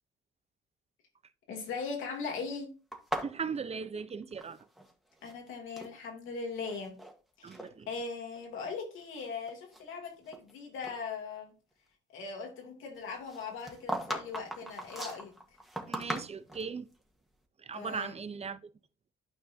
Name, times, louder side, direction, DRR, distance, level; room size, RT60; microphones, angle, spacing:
voice 1, 1.5-2.7 5.2-6.9 7.4-11.5 12.1-15.3 17.7-18.2, left 4 dB, 85° left, 2.9 m, -39 dB
sound 1, 2.9-4.9 5.2-5.9 6.6-7.1 7.5-7.7 8.3-8.4 9.0-10.5 10.8-11.0 13.3-16.7, right 1 dB, ahead, 1.9 m, -39 dB
voice 2, 3.2-4.6 7.4-7.9 15.9-16.9 17.6-18.6, right 5 dB, 30° right, 0.8 m, -38 dB
12.5 x 5.4 x 2.8 m
cardioid pair, 90°, 20 cm